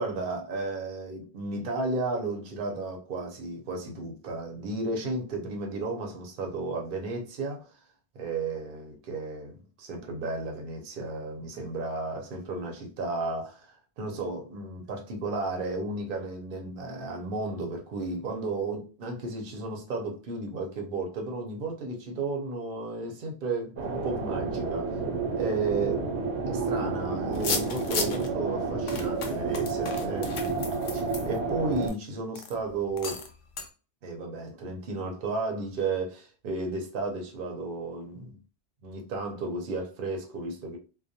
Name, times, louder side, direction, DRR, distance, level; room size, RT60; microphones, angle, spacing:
voice 1, 0.0-7.7 8.1-24.9 25.4-26.1 26.5-33.2 34.0-38.4 38.8-40.8, right 3 dB, 60° right, 0.8 m, -33 dB
sound 1, 23.8-31.9, right 4 dB, 85° right, 1.0 m, -30 dB
sound 2, 27.3-28.3 28.9-31.9 32.3-32.5 33.0-33.3 33.6-33.7, left 4 dB, 60° left, 0.6 m, -34 dB
2.3 x 2.1 x 2.7 m
omnidirectional pair, 1.1 m